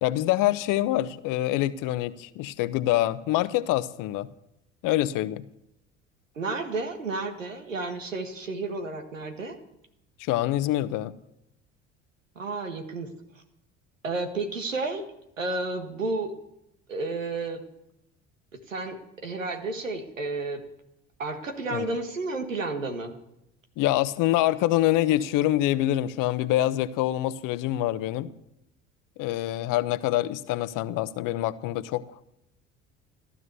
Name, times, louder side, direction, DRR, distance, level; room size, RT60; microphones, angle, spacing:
voice 1, 0.0-4.3 4.8-5.4 10.2-11.1 21.7-21.9 23.8-28.3 29.2-32.3, left 14 dB, 55° left, 15 dB, 1.0 m, -25 dB
voice 2, 6.3-9.6 12.3-13.1 14.0-15.0 15.4-16.4 16.9-17.6 18.7-20.6 21.2-23.2, right 3 dB, 90° right, 6 dB, 1.7 m, -31 dB
15.5 x 12.5 x 6.9 m, 0.83 s
hypercardioid pair, 60°, 38 cm